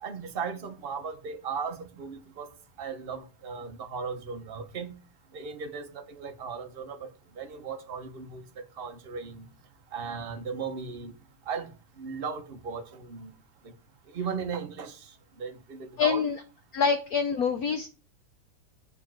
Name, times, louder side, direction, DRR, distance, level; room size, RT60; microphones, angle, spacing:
voice 1, 0.0-2.5 2.8-5.0 5.3-7.1 7.4-8.4 8.8-9.5 9.9-11.1 11.5-11.7 12.0-13.3 13.6-13.7 14.1-15.1 15.4-16.2, right 6 dB, 45° right, 0.7 m, -36 dB
voice 2, 16.0-16.4 16.7-17.9, left 6 dB, 80° left, 0.8 m, -25 dB
8.3 x 5.0 x 5.8 m
omnidirectional pair, 2.4 m